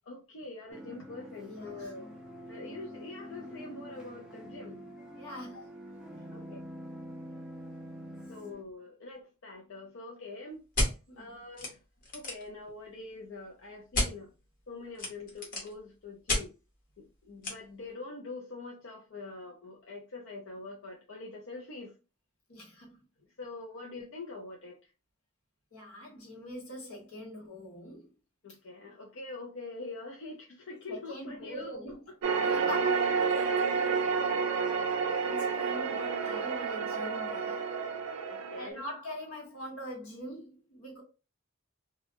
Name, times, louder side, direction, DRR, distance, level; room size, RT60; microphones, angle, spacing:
voice 1, 0.1-2.1 2.5-4.8 6.3-6.6 8.3-10.6 11.2-11.8 12.1-14.3 14.7-16.5 17.0-21.9 23.4-24.8 28.4-31.8 32.6-32.7 33.8-34.2 38.3-38.9, left 3 dB, 65° left, 0.5 m, -44 dB
sound 1, 0.7-8.6, equal, 5° right, 0.4 m, -46 dB
voice 2, 1.5-1.9 5.1-5.7 11.1-11.3 22.5-23.0 25.7-28.1 30.9-32.1 32.4-33.8 35.2-37.6 38.6-41.0, left 1 dB, 85° left, 1.1 m, -43 dB
sound 2, 10.7-10.9 11.6-11.7 12.0-12.5 13.9-14.1 15.0-15.7 16.3-16.4 17.4-17.5, left 1 dB, 40° left, 0.9 m, -30 dB
sound 3, 32.2-38.7, right 5 dB, 80° right, 0.4 m, -30 dB
2.3 x 2.0 x 2.8 m
head